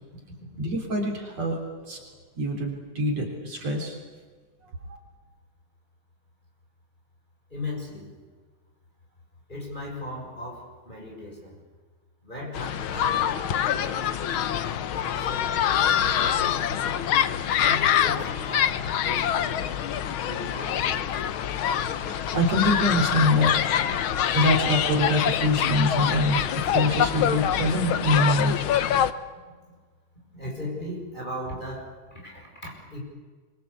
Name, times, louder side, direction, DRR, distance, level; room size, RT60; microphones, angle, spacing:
voice 1, 0.6-1.6 1.9-2.0 2.4-4.0 21.6-21.7 22.0-23.6 24.3-28.6, left 1 dB, 50° right, 1 dB, 4.6 m, -24 dB
voice 2, 7.5-8.1 9.5-11.5 12.2-14.0 14.9-15.6 15.9-17.0 17.5-19.6 20.2-21.2 30.3-33.0, left 1 dB, 15° left, 0 dB, 6.7 m, -38 dB
sound 1, 12.5-29.1, left 9 dB, 90° left, 1.1 m, -25 dB
25.5 x 24.5 x 8.4 m, 1.4 s
omnidirectional pair, 3.7 m